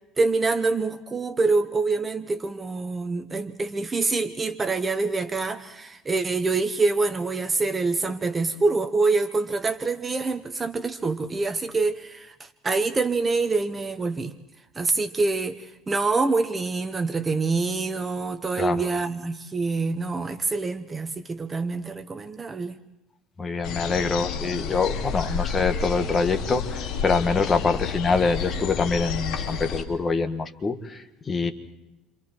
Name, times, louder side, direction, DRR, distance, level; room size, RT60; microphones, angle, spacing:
voice 1, 0.2-14.3 14.8-22.8, right 3 dB, 20° right, 9 dB, 1.0 m, -26 dB
voice 2, 18.6-18.9 23.4-31.5, left 4 dB, 20° left, 7 dB, 1.6 m, -25 dB
sound 1, 23.6-29.8, left 6 dB, 65° left, 3.4 m, -30 dB
29.5 x 26.5 x 4.5 m, 0.92 s
cardioid pair, 145°, 0 cm